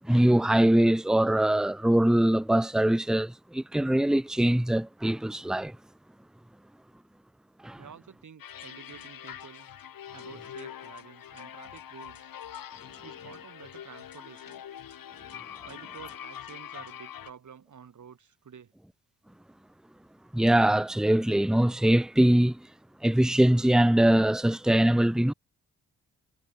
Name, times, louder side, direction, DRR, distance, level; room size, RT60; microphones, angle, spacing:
voice 1, 0.1-5.7 7.6-7.8 20.3-22.6 23.0-25.3, right 1 dB, ahead, 1.0 m, -22 dB
voice 2, 7.8-9.7 10.1-12.3 13.0-14.6 15.7-18.7, right 7 dB, 55° right, 5.5 m, -50 dB
sound 1, 8.4-17.3, left 9 dB, 70° left, 6.8 m, -44 dB
cardioid pair, 70°, 35 cm